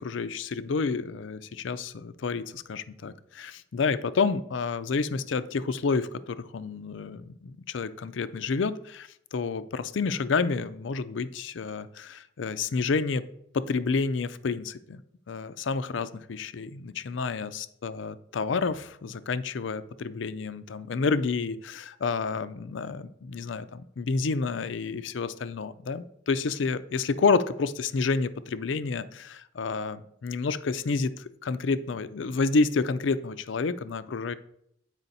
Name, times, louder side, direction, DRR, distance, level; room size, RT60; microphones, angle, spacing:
voice 1, 0.0-13.2 13.5-15.0 15.3-34.3, left 4 dB, 70° left, 13 dB, 0.5 m, -29 dB
8.9 x 4.9 x 4.0 m, 0.71 s
head